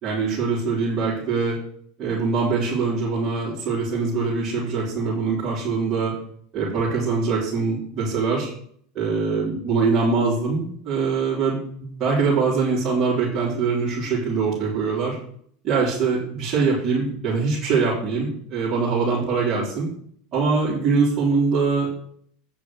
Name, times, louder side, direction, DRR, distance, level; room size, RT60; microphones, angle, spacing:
voice 1, 0.0-1.6 2.0-6.1 6.5-8.5 8.9-15.2 15.6-19.9 20.3-21.9, right 4 dB, 40° right, -8 dB, 4.3 m, -23 dB
9.1 x 6.0 x 6.4 m, 0.63 s
hypercardioid pair, 95°, 0 cm